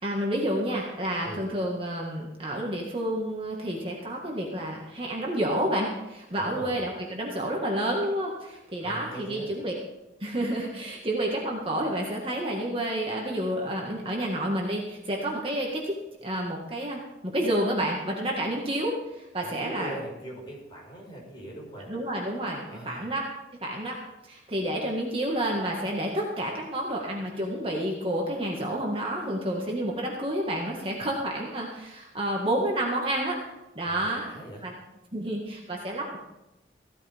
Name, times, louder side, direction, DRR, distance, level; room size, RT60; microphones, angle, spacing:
voice 1, 0.0-9.7 10.2-16.0 16.2-19.9 21.9-23.3 23.6-24.0 24.3-33.4 33.8-34.3 34.6-34.7 35.1-36.2, right 1 dB, 30° right, -1 dB, 1.8 m, -29 dB
voice 2, 6.3-6.9 8.8-9.5 19.4-21.9 22.6-23.1 33.9-34.7, right 1 dB, 25° left, -3 dB, 5.2 m, -41 dB
16.0 x 13.0 x 3.6 m, 0.95 s
head